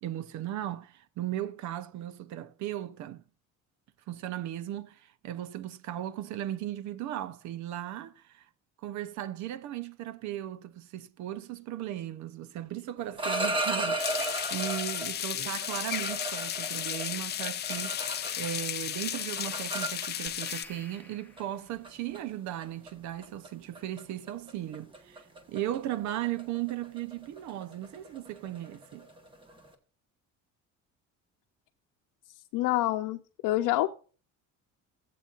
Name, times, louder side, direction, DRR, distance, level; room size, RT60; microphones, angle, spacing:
voice 1, 0.0-3.2 4.1-8.5 8.8-29.1, right 12 dB, 65° right, 0.7 m, -37 dB
sound 1, 13.0-15.1 15.6-18.7 18.9-20.5 21.4-21.5 21.8-22.2 22.6-22.9 23.2-23.5 23.7-24.0 24.3-29.7, right 2 dB, 15° right, 1.2 m, -35 dB
sound 2, 14.0-20.6, left 11 dB, 35° left, 0.5 m, -34 dB
sound 3, 20.3-21.8, left 3 dB, 5° left, 0.8 m, -49 dB
voice 2, 32.5-33.9, left 16 dB, 80° left, 0.8 m, -27 dB
17.0 x 7.8 x 2.4 m
cardioid pair, 175°, 31 cm